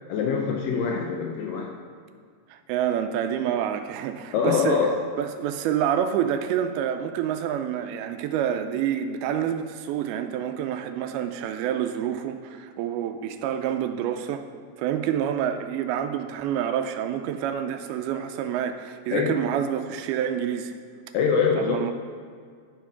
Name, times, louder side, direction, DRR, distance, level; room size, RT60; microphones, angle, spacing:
voice 1, 0.1-1.7 4.3-5.0 19.1-19.4 21.1-21.8, left 6 dB, 80° left, 1 dB, 2.0 m, -24 dB
voice 2, 2.5-4.9 5.2-14.5 14.8-20.7 21.6-21.9, right 9 dB, 80° right, 8 dB, 2.4 m, -28 dB
11.5 x 4.5 x 5.8 m, 2.1 s
omnidirectional pair, 4.5 m